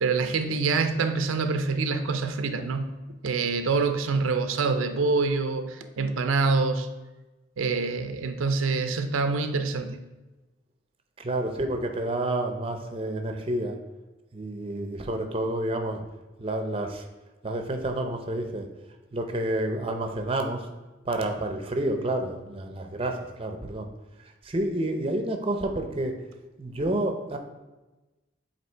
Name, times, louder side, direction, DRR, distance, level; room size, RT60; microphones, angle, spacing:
voice 1, 0.0-2.9 3.2-6.9 7.6-10.0, right 4 dB, 85° right, 8 dB, 0.5 m, -26 dB
voice 2, 11.2-13.8 14.3-16.0 16.4-17.1 17.4-18.7 19.1-20.6 21.1-23.9 24.4-26.1 26.6-27.4, right 1 dB, 25° right, 5 dB, 0.5 m, -29 dB
7.8 x 2.9 x 4.4 m, 1.1 s
head